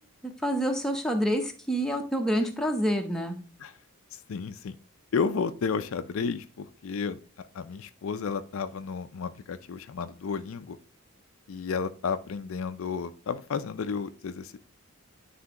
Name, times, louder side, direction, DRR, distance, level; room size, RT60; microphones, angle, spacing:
voice 1, 0.4-3.4, equal, ahead, 3 dB, 0.6 m, -27 dB
voice 2, 4.1-4.8 5.1-7.2 7.5-10.8 11.5-14.6, left 5 dB, 70° left, 11 dB, 0.4 m, -32 dB
9.6 x 3.4 x 2.9 m, 0.39 s
head